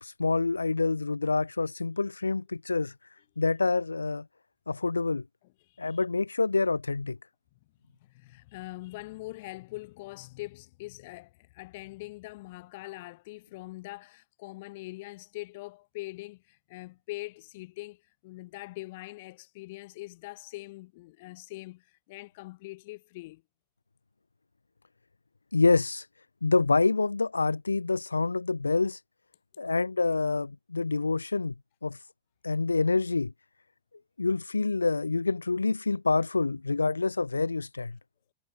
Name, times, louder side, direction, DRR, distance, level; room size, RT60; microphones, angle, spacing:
voice 1, 0.0-2.9 3.4-4.2 4.7-5.2 5.8-7.2 25.5-26.1 26.4-29.0 29.6-31.5 31.8-32.0 32.4-33.3 34.2-38.0, left 3 dB, 80° left, 0.7 m, -27 dB
voice 2, 5.7-6.0 8.0-23.4, left 20 dB, 50° left, 1.3 m, -43 dB
figure-of-eight pair, 90°, 0 cm